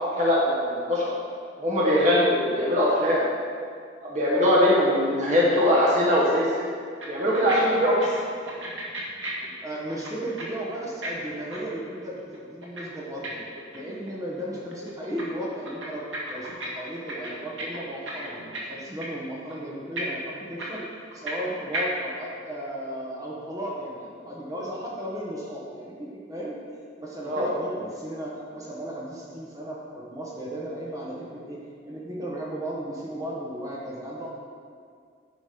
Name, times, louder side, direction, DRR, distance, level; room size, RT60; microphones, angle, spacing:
voice 1, 0.2-1.1 1.6-3.3 4.1-6.5 7.1-8.1 27.2-27.5, equal, 40° right, -6 dB, 1.3 m, -21 dB
sound 1, 6.7-6.8 7.0-7.5 7.8-10.4 10.7-14.1 14.4-15.2 15.5-16.7 16.9-18.7 19.0-19.2 19.5-19.6 20.0-21.5 21.7-21.8, right 2 dB, 80° right, 1.8 m, -35 dB
voice 2, 9.4-13.4 13.7-20.8 21.1-26.7 27.0-31.6 31.8-34.3, right 1 dB, 20° right, -4 dB, 1.1 m, -35 dB
10.5 x 5.0 x 5.2 m, 2.1 s
head